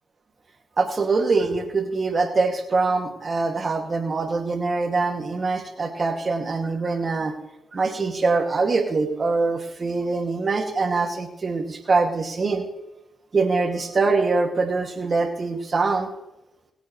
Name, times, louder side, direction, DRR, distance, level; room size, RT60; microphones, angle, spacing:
voice 1, 0.8-7.3 7.7-12.6 13.3-16.1, right 3 dB, 45° right, 4 dB, 2.3 m, -23 dB
22.0 x 8.4 x 3.2 m, 0.90 s
supercardioid pair, 45°, 0 cm